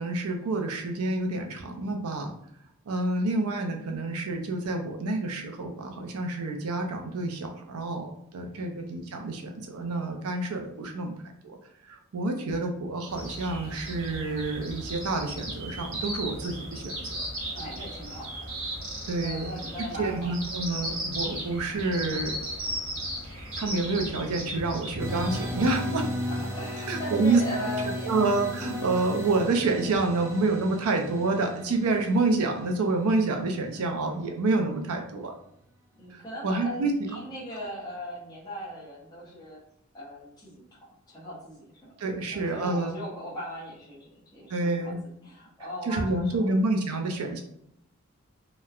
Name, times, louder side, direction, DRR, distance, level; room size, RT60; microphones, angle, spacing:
voice 1, 0.0-2.3 2.9-11.1 11.4-11.6 11.8-17.3 19.1-19.5 20.0-22.3 23.6-26.1 26.9-27.4 28.0-35.3 36.1-36.9 42.0-42.9 44.5-45.0 45.9-47.4, right 3 dB, 85° right, 4 dB, 0.5 m, -28 dB
sound 1, 13.1-25.8, right 1 dB, 60° right, 0.8 m, -36 dB
voice 2, 17.5-18.3 18.8-20.3 26.3-28.2 36.0-39.6 39.9-41.9 42.3-44.9 45.2-46.6, equal, 20° left, -6 dB, 0.8 m, -39 dB
sound 2, 25.0-33.8, equal, 15° right, 0.4 m, -35 dB
2.9 x 2.1 x 2.3 m, 0.72 s
head